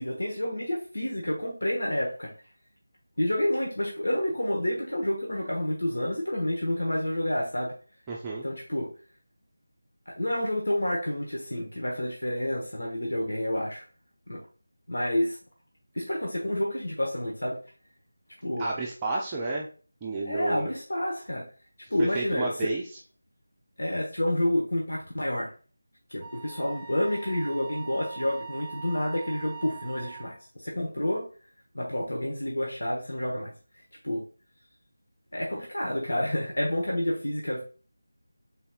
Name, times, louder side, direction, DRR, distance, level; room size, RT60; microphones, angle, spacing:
voice 1, 0.0-2.3 3.2-7.7 8.4-8.9 10.1-13.8 14.3-14.4 14.9-15.4 15.9-17.6 18.4-18.7 20.3-21.5 21.9-22.6 23.8-25.5 26.1-31.3 31.7-33.5 34.0-34.2 35.3-37.6, left 1 dB, 75° left, -1 dB, 1.1 m, -29 dB
voice 2, 8.1-8.5 18.6-19.7 20.0-20.7 22.0-23.0, right 3 dB, 15° right, -4 dB, 0.5 m, -31 dB
Wind instrument woodwind instrument, 26.2-30.4, right 6 dB, 10° left, 1.3 m, -42 dB
4.1 x 3.9 x 2.3 m, 0.38 s
figure-of-eight pair, 165°, 0 cm